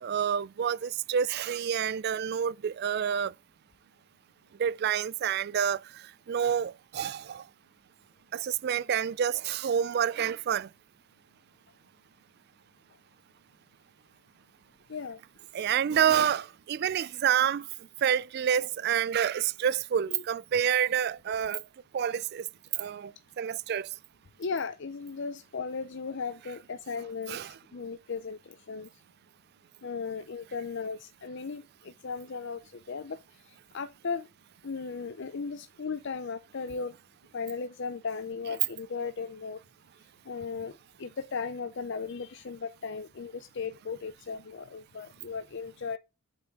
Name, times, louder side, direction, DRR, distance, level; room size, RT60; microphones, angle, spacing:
voice 1, 0.0-3.3 4.6-7.4 8.3-10.7 15.5-17.7 18.0-21.6 21.9-22.4 22.8-23.9 27.3-27.6, right 8 dB, 45° right, 0.3 m, -28 dB
voice 2, 24.4-27.4 27.7-28.4 28.7-28.9 29.8-31.6 32.0-32.6 32.9-33.2 33.7-34.2 34.6-36.9 37.3-39.6 40.3-40.7 41.0-46.0, left 5 dB, 55° left, 0.6 m, -36 dB
7.8 x 5.5 x 3.7 m
head